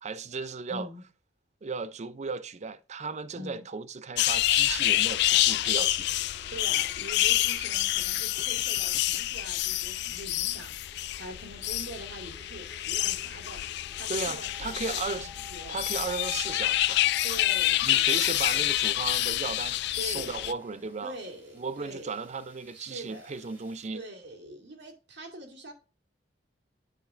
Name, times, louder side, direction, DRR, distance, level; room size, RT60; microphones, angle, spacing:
voice 1, 0.0-0.9 1.6-6.1 14.1-15.3 15.7-17.1 17.8-21.2 21.5-24.0, right 4 dB, 40° right, 0.5 m, -35 dB
voice 2, 0.7-1.0 3.3-3.6 6.5-15.8 17.2-18.7 19.9-20.4 21.0-22.3 22.7-23.3 23.9-25.7, right 1 dB, 70° right, 2.4 m, -44 dB
sound 1, 4.2-20.5, left 15 dB, 65° left, 0.3 m, -27 dB
sound 2, 4.6-23.9, left 2 dB, 10° right, 1.6 m, -52 dB
10.5 x 4.7 x 2.5 m
head